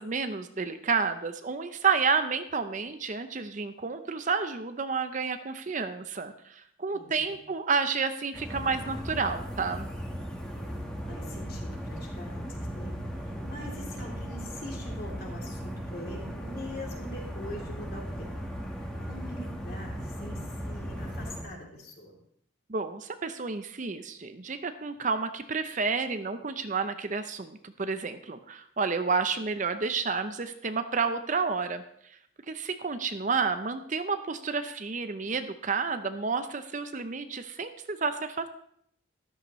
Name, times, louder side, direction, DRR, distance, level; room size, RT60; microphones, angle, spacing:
voice 1, 0.0-9.9 22.7-31.8 32.5-38.5, right 5 dB, 40° right, 9 dB, 0.6 m, -30 dB
voice 2, 6.9-7.4 10.5-10.8 11.1-18.5 19.0-22.2, left 1 dB, 50° left, -1 dB, 3.0 m, -43 dB
sound 1, 8.3-21.4, equal, 5° left, 1.3 m, -37 dB
13.5 x 12.5 x 3.1 m, 0.69 s
head